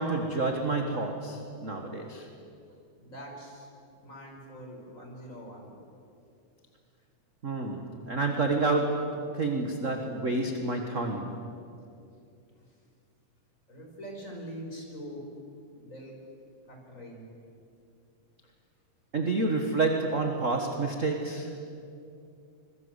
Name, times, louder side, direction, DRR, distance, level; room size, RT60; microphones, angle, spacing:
voice 1, 0.0-2.3 7.4-11.5 19.1-21.5, right 3 dB, 35° right, 4 dB, 1.4 m, -29 dB
voice 2, 3.0-3.7 4.0-5.8 13.7-15.2 15.8-16.2 16.7-17.3, equal, 25° left, 0 dB, 5.3 m, -43 dB
25.5 x 22.0 x 8.1 m, 2.5 s
omnidirectional pair, 3.4 m